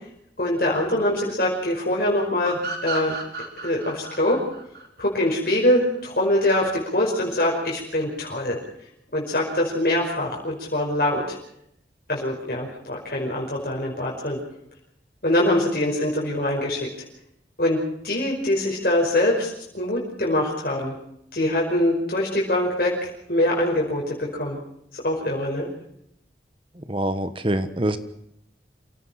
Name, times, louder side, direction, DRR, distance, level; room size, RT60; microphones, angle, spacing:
voice 1, 0.4-3.1 3.6-4.4 5.0-8.6 9.1-11.4 12.1-14.4 15.2-16.9 17.6-20.9 21.3-22.9 23.3-24.6 24.9-25.7, left 1 dB, 55° left, -2 dB, 5.4 m, -23 dB
sound 1, 2.4-5.8, right 3 dB, 65° right, 4.7 m, -33 dB
voice 2, 26.8-28.0, right 1 dB, 30° right, 11 dB, 1.3 m, -25 dB
28.0 x 17.0 x 5.8 m, 0.76 s
head